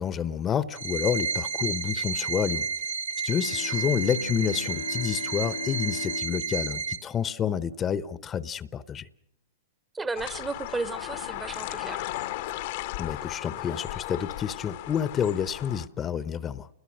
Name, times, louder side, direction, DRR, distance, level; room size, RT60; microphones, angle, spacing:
voice 1, 0.0-2.7 3.2-9.1 13.0-16.7, left 8 dB, 25° left, 0.9 m, -29 dB
sound 1, 0.7-7.0, right 5 dB, 90° right, 2.0 m, -31 dB
Bowed string instrument, 3.3-8.2, left 6 dB, 90° left, 1.4 m, -41 dB
voice 2, 9.9-12.1, right 3 dB, 15° right, 0.9 m, -34 dB
sound 2, 10.2-15.9, left 15 dB, 55° left, 1.0 m, -36 dB
29.5 x 21.5 x 6.4 m
hypercardioid pair, 110°, 0 cm